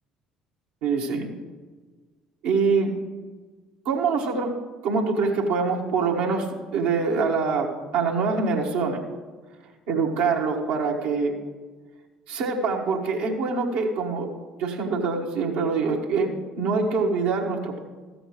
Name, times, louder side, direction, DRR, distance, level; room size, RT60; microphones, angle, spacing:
voice 1, 0.8-1.3 2.4-2.9 3.8-4.5 4.8-9.0 9.9-11.4 12.3-14.3 14.6-17.8, right 4 dB, 70° right, 0 dB, 1.4 m, -24 dB
14.0 x 7.9 x 3.2 m, 1.4 s
hypercardioid pair, 60°, 3 cm